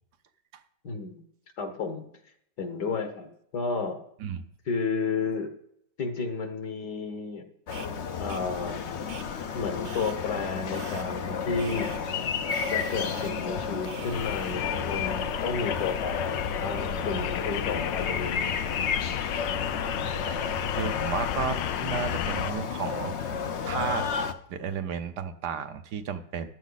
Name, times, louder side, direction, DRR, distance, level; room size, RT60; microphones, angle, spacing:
voice 1, 0.8-1.2 1.6-2.1 2.6-4.0 4.7-5.5 6.0-7.5 8.2-9.2 9.5-11.9 12.7-18.7, left 4 dB, 65° left, 7 dB, 2.1 m, -32 dB
sound 1, 7.7-24.3, left 6 dB, 50° left, 0.9 m, -32 dB
sound 2, 7.7-7.9 8.3-8.4 9.1-9.2 9.8-10.1 10.7-11.0 11.6-12.0 12.5-13.3 13.8-14.5, right 5 dB, 45° right, 1.1 m, -44 dB
sound 3, 14.1-22.5, left 10 dB, 90° left, 1.4 m, -33 dB
voice 2, 20.7-24.1 24.5-26.5, right 7 dB, 70° right, 8 dB, 1.4 m, -33 dB
14.5 x 10.5 x 4.1 m, 0.71 s
omnidirectional pair, 1.9 m